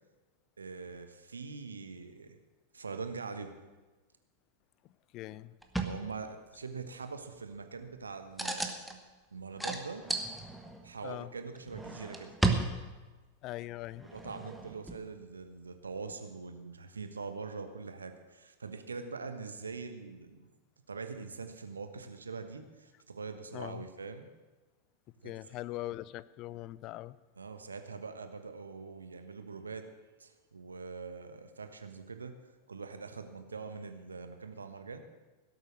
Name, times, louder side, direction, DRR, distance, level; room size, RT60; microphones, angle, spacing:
voice 1, 0.6-2.4 2.7-3.6 5.8-8.7 9.3-10.2 10.8-12.3 14.1-20.5 20.9-24.3 25.2-25.3 27.4-29.9 30.2-32.4 32.7-35.0, right 4 dB, 75° right, 8 dB, 1.2 m, -43 dB
voice 2, 5.1-5.5 11.0-11.3 13.4-14.1 23.5-23.8 25.2-27.2, left 16 dB, 40° left, 18 dB, 0.4 m, -41 dB
sound 1, 5.6-6.0 8.4-9.0 9.6-10.9 11.6-13.2 13.9-15.0 16.1-16.2, right 2 dB, 5° right, 1.3 m, -34 dB
17.0 x 8.2 x 6.4 m, 1.2 s
figure-of-eight pair, 90°, 0 cm